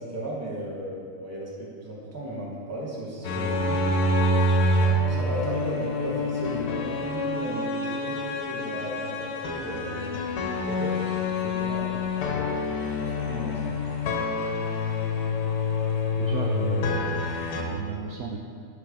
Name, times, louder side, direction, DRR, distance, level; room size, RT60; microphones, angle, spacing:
voice 1, 0.0-3.9 5.1-12.4 13.0-13.7, right 1 dB, 10° right, -5 dB, 1.0 m, -35 dB
sound 1, 3.2-17.6, left 2 dB, 80° left, 1.4 m, -27 dB
voice 2, 16.2-18.4, right 6 dB, 70° right, 0 dB, 1.0 m, -33 dB
9.8 x 3.4 x 5.0 m, 2.2 s
omnidirectional pair, 1.9 m